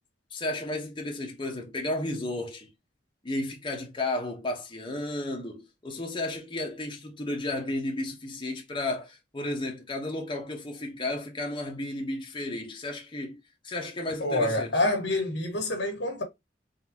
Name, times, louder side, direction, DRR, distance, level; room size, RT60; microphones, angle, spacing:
voice 1, 0.3-2.7 3.2-14.8, left 2 dB, 30° left, 1.0 m, -33 dB
voice 2, 14.2-16.2, left 2 dB, 80° left, 1.5 m, -27 dB
4.0 x 3.6 x 2.8 m
head